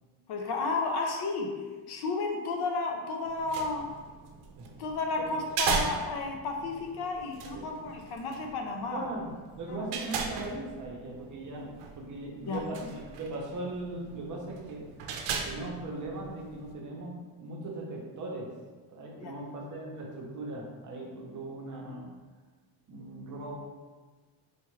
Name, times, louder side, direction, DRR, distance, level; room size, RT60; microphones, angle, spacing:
voice 1, 0.3-1.6 1.9-3.9 4.8-9.1 9.7-9.9 12.5-12.6 19.2-19.3, left 3 dB, 55° left, 2 dB, 0.6 m, -32 dB
sound 1, 3.3-16.7, right 5 dB, 75° right, 0.6 m, -38 dB
voice 2, 7.5-7.9 8.9-9.3 9.6-14.8 15.4-18.5 18.9-22.1 22.9-23.6, right 2 dB, 40° right, -1 dB, 0.8 m, -39 dB
4.4 x 2.4 x 3.1 m, 1.4 s
cardioid pair, 130°, 48 cm